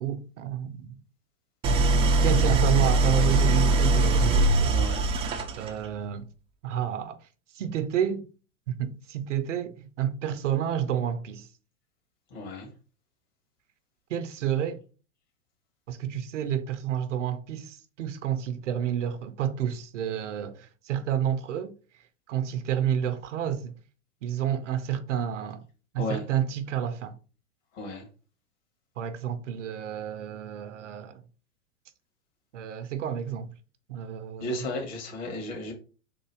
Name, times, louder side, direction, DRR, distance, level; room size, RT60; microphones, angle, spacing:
voice 1, 0.0-1.0 2.2-4.9 5.6-6.3 6.6-7.2 7.6-8.2 8.7-11.5 14.1-14.8 15.9-21.7 22.3-23.7 24.2-25.6 25.9-27.2 29.0-31.2 32.5-33.5 33.9-34.5, right 9 dB, 65° right, 0.6 m, -30 dB
Idling, 1.6-5.9, right 2 dB, 15° right, 0.4 m, -22 dB
voice 2, 4.7-5.1 12.3-12.7 26.0-26.2 27.7-28.0 34.4-35.7, left 1 dB, 45° left, 2.0 m, -34 dB
3.7 x 2.6 x 4.6 m
figure-of-eight pair, 95°, 39 cm